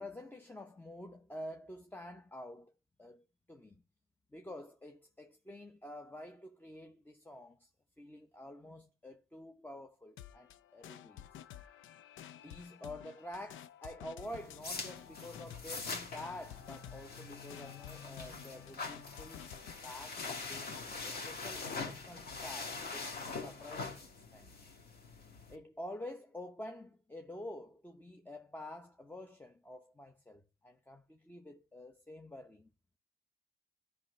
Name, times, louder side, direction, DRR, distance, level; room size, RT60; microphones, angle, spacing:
voice 1, 0.0-2.7 3.0-3.8 4.3-7.7 8.0-11.5 12.4-20.7 21.0-23.1 23.4-24.5 25.5-32.7, left 1 dB, 10° left, 0.8 m, -48 dB
sound 1, 10.2-20.8, left 11 dB, 80° left, 0.5 m, -52 dB
sound 2, 14.2-25.5, left 4 dB, 50° left, 1.8 m, -44 dB
13.5 x 5.4 x 3.2 m
cardioid pair, 90°, 20 cm